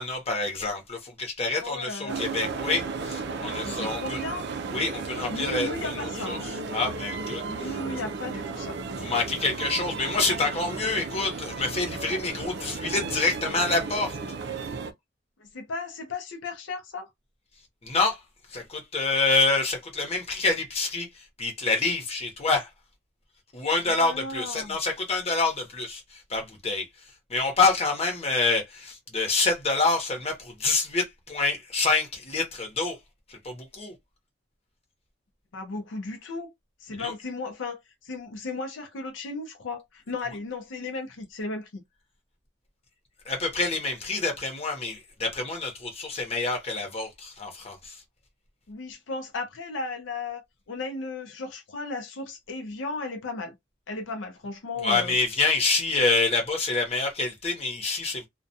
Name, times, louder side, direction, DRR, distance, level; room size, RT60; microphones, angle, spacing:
voice 1, 0.0-4.2 4.7-7.8 9.0-14.2 17.8-18.2 18.5-22.7 23.5-26.9 27.3-33.0 33.3-33.9 37.0-37.1 43.2-48.0 54.8-58.3, left 3 dB, 35° left, 0.9 m, -27 dB
voice 2, 1.6-2.2 3.6-4.5 5.3-6.5 7.5-8.8 15.4-17.1 23.9-24.8 35.5-36.5 36.8-41.8 48.7-50.4 50.7-53.5 53.9-55.2, left 3 dB, 75° left, 0.5 m, -35 dB
sound 1, 2.1-14.9, right 4 dB, 60° right, 0.4 m, -34 dB
2.3 x 2.2 x 2.6 m
head